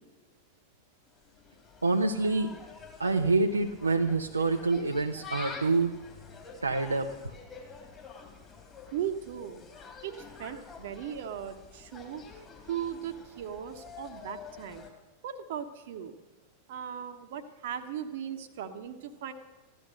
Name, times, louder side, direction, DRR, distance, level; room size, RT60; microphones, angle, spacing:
Insect, 1.1-14.9, left 4 dB, 20° left, 3.4 m, -48 dB
voice 1, 1.8-2.5 3.0-5.9 6.6-7.1, right 3 dB, 80° right, 3 dB, 0.7 m, -26 dB
voice 2, 8.9-9.6 10.0-12.2 12.7-14.8 15.2-16.1 16.7-19.3, right 9 dB, 55° right, 8 dB, 1.2 m, -37 dB
15.0 x 12.0 x 6.5 m, 1.2 s
figure-of-eight pair, 90°, 0 cm